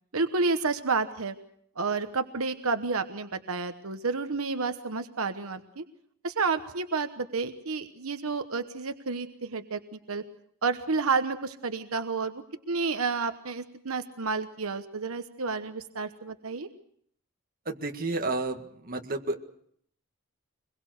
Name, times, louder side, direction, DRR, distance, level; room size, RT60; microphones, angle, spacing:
voice 1, 0.1-1.3 1.8-5.8 6.2-10.2 10.6-16.7, right 4 dB, 80° right, 8 dB, 1.1 m, -30 dB
voice 2, 17.7-19.4, right 2 dB, 40° right, 4 dB, 1.9 m, -31 dB
24.5 x 21.5 x 6.5 m, 0.67 s
head